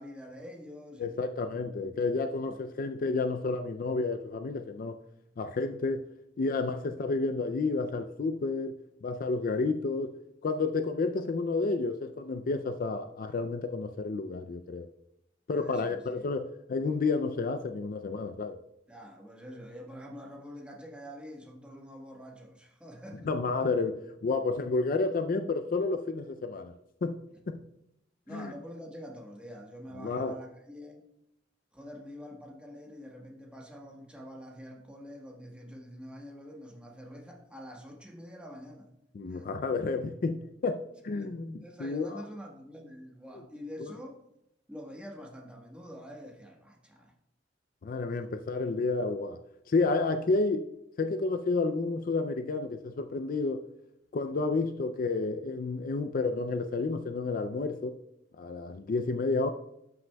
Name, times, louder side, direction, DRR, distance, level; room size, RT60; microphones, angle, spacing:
voice 1, 0.0-1.2 2.5-2.6 9.5-9.6 15.5-16.3 18.9-23.3 28.3-31.1 31.7-38.9 39.3-39.5 41.1-41.3 41.6-44.2 44.7-47.1, equal, 5° right, 1.2 m, -46 dB
voice 2, 1.0-5.0 5.4-6.1 6.4-8.7 9.0-10.1 10.4-14.9 15.5-18.6 23.3-26.7 27.0-27.1 27.5-27.6 28.3-28.5 30.0-30.4 39.1-42.2 43.8-43.9 47.8-49.4 49.7-50.7 51.0-53.6 54.1-58.0 58.4-59.5, left 3 dB, 45° left, 0.4 m, -30 dB
12.5 x 6.0 x 2.2 m
head